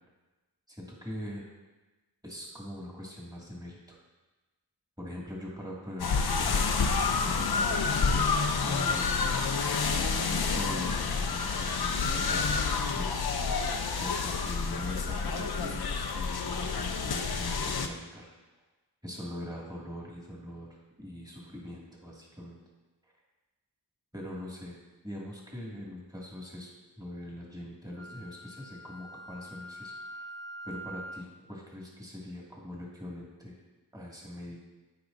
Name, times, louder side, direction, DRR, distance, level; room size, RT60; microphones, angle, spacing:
voice 1, 0.7-1.5 2.2-4.0 5.0-6.1 6.4-7.5 8.1-9.4 10.3-13.3 14.0-18.3 19.0-20.7 21.0-22.6 23.0-23.1 24.1-24.8 25.0-26.7 27.0-30.2 30.6-33.6 33.9-34.6, left 1 dB, 10° right, -4 dB, 2.1 m, -42 dB
sound 1, 6.0-17.9, left 5 dB, 70° left, 0.7 m, -29 dB
Wind instrument woodwind instrument, 28.0-31.3, right 1 dB, 50° left, 1.0 m, -44 dB
13.5 x 4.9 x 2.6 m, 1.2 s
wide cardioid pair, 40°, 39 cm